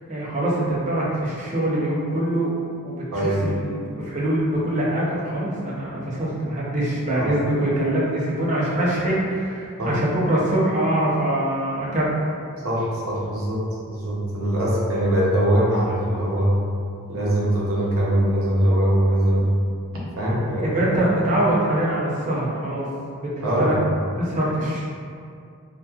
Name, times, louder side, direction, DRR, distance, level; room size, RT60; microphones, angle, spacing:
voice 1, 0.1-2.5 2.8-12.3 20.6-22.9 23.2-23.8 24.2-24.9, right 1 dB, 35° right, -6 dB, 0.5 m, -24 dB
voice 2, 12.6-16.5 17.1-19.5 20.2-21.0 23.4-23.8, right 1 dB, 75° right, -6 dB, 0.7 m, -22 dB
2.8 x 2.2 x 2.3 m, 2.3 s
head